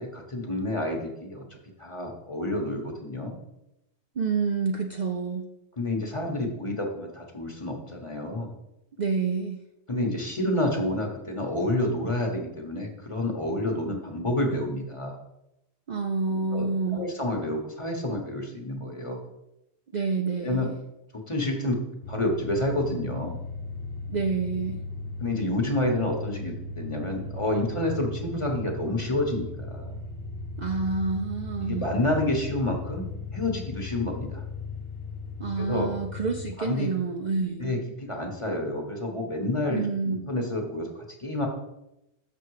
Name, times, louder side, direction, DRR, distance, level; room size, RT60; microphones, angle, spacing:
voice 1, 0.0-1.4 1.8-3.4 5.8-8.5 9.9-15.2 16.3-16.7 16.9-19.2 20.4-20.7 21.1-21.8 22.1-23.4 25.2-30.0 31.6-34.4 35.6-35.9 36.6-36.9 37.6-41.5, left 1 dB, 30° left, 2 dB, 1.2 m, -29 dB
voice 2, 4.1-5.5 9.0-9.6 15.9-17.1 19.9-20.8 24.1-24.8 30.6-31.9 35.4-37.8 39.7-40.3, right 4 dB, 50° right, 3 dB, 0.6 m, -28 dB
sound 1, 22.0-36.5, left 3 dB, 90° left, 1.1 m, -37 dB
6.7 x 6.1 x 4.8 m, 0.89 s
omnidirectional pair, 1.1 m